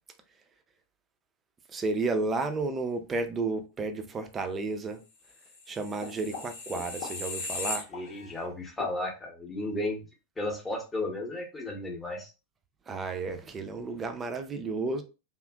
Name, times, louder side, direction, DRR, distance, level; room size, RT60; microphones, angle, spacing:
voice 1, 1.7-5.0 5.7-7.9 12.9-15.0, right 3 dB, 20° right, 0.4 m, -32 dB
sound 1, 5.5-8.4 8.8-9.0, left 3 dB, 50° left, 0.7 m, -37 dB
voice 2, 7.9-10.0 10.4-12.3, left 2 dB, 15° left, 0.7 m, -34 dB
2.7 x 2.4 x 2.2 m
figure-of-eight pair, 90°, 0 cm